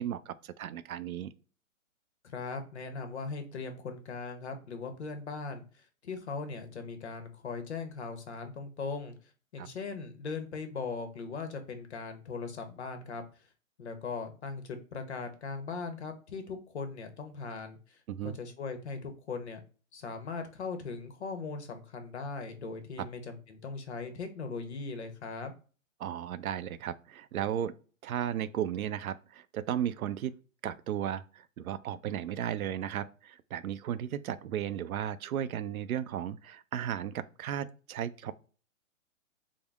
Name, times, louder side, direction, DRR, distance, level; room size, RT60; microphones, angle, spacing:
voice 1, 0.0-1.3 9.6-9.7 18.1-18.4 26.0-27.7 28.0-30.4 30.6-38.3, right 10 dB, 85° right, 0.5 m, -35 dB
voice 2, 2.2-9.2 9.5-13.2 13.8-18.0 18.2-19.6 19.9-25.5, left 4 dB, 50° left, 0.8 m, -39 dB
3.7 x 2.0 x 3.5 m
hypercardioid pair, 175°, 41 cm